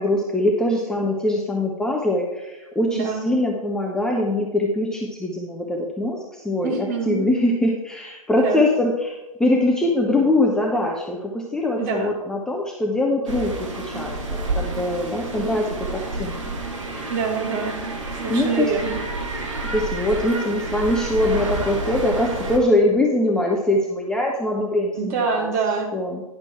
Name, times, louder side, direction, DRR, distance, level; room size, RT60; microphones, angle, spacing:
voice 1, 0.0-16.6 16.9-17.2 18.3-18.7 19.6-25.5 25.9-26.2, left 1 dB, 5° left, -1 dB, 0.6 m, -23 dB
voice 2, 2.9-3.3 6.6-7.3 8.4-8.6 11.8-12.1 17.1-17.8 18.1-19.0 24.9-25.9, right 5 dB, 30° right, 2 dB, 1.6 m, -25 dB
sound 1, 13.3-22.6, right 2 dB, 55° right, 1.8 m, -29 dB
10.0 x 6.0 x 4.4 m, 1.1 s
figure-of-eight pair, 120°, 19 cm